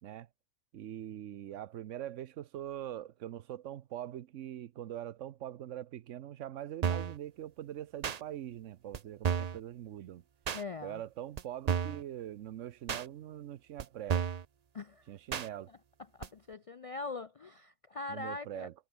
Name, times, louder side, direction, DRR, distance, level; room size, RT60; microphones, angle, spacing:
voice 1, 0.7-10.2 10.8-14.3 15.1-15.7 18.1-18.7, right 11 dB, 90° right, 1.1 m, -43 dB
sound 1, 6.8-7.2 8.0-8.2 8.9-9.0 9.2-9.6 10.5-10.6 11.4-11.5 11.7-12.0 12.9-13.0 13.8-13.9 14.1-14.4 15.3-15.5 16.2-16.3, right 7 dB, 45° right, 0.6 m, -32 dB
voice 2, 10.5-11.0 14.7-15.1 15.7-15.8 16.1-18.7, left 3 dB, 55° left, 0.3 m, -42 dB
omnidirectional pair, 1.2 m